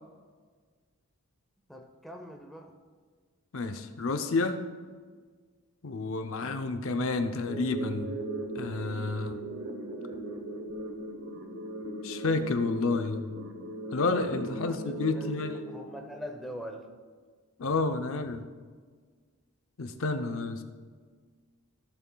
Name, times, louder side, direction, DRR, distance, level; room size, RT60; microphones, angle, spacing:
voice 1, 1.7-2.8 14.5-16.9, equal, ahead, 3 dB, 0.7 m, -43 dB
voice 2, 3.5-4.6 5.8-8.1 8.6-9.4 12.0-13.3 13.9-15.6 17.6-18.4 19.8-20.6, left 3 dB, 65° left, 7 dB, 0.6 m, -30 dB
sound 1, 7.5-16.5, right 1 dB, 70° right, 1.0 m, -38 dB
14.5 x 7.0 x 2.3 m, 1.5 s
head